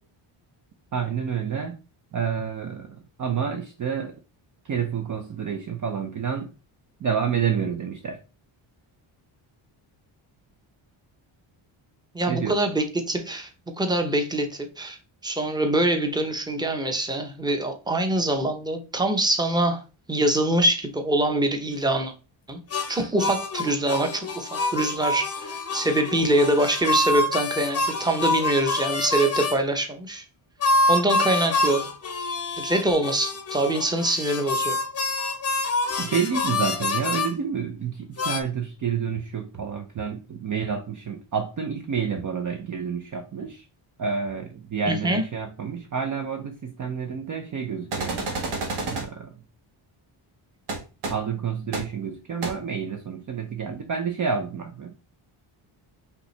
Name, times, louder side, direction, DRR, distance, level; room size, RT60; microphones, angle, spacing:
voice 1, 0.9-1.8 2.1-4.2 4.6-6.5 7.0-8.2 12.3-12.6 36.0-43.7 44.0-48.2 48.9-49.4 51.1-54.9, right 6 dB, 40° right, 0.5 m, -29 dB
voice 2, 12.1-13.5 13.8-15.0 15.2-19.8 20.1-22.1 22.5-22.6 22.9-30.2 30.9-31.9 32.6-34.8 44.9-45.2, right 1 dB, 10° right, 0.8 m, -24 dB
sound 1, 22.7-29.6 30.6-37.3 38.2-38.4, left 2 dB, 30° left, 0.7 m, -26 dB
sound 2, 47.9-49.0 50.7-50.8 51.0-51.1 51.7-51.8 52.4-52.5, right 3 dB, 80° right, 1.6 m, -29 dB
5.5 x 2.8 x 3.2 m
cardioid pair, 100°, 49 cm